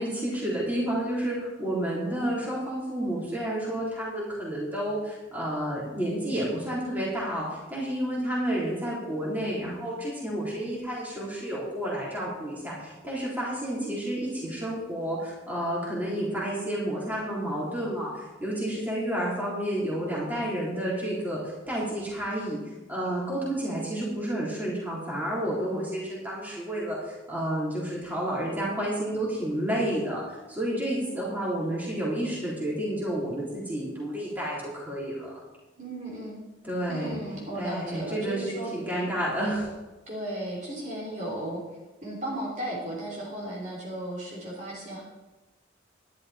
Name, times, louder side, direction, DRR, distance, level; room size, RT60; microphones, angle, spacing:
voice 1, 0.0-22.6 22.9-35.3 36.6-37.1 37.5-39.7, right 1 dB, 10° right, -6 dB, 3.7 m, -30 dB
voice 2, 31.1-31.5 35.8-36.3 36.9-38.7 40.1-41.6 42.0-45.0, right 1 dB, 40° right, -4 dB, 3.2 m, -35 dB
12.5 x 11.5 x 4.3 m, 1.1 s
head